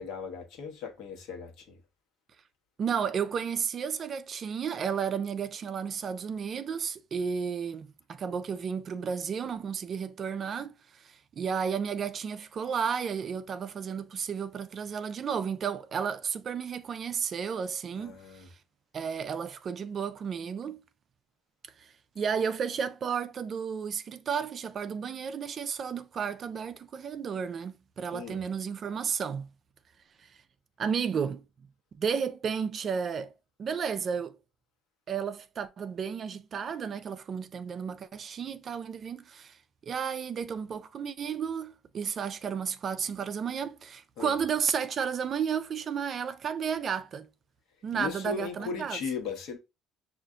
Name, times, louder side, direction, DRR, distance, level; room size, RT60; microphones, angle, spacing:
voice 1, 0.0-1.8 17.9-18.5 28.1-28.4 44.2-44.4 47.9-49.6, left 5 dB, 75° left, 1.1 m, -37 dB
voice 2, 2.8-18.4 18.9-20.8 21.8-29.5 30.8-31.4 31.9-33.3 33.6-34.4 35.1-39.6 39.8-47.3 47.8-49.0, right 7 dB, 35° right, 0.3 m, -33 dB
6.5 x 2.5 x 2.4 m
cardioid pair, 145°, 0 cm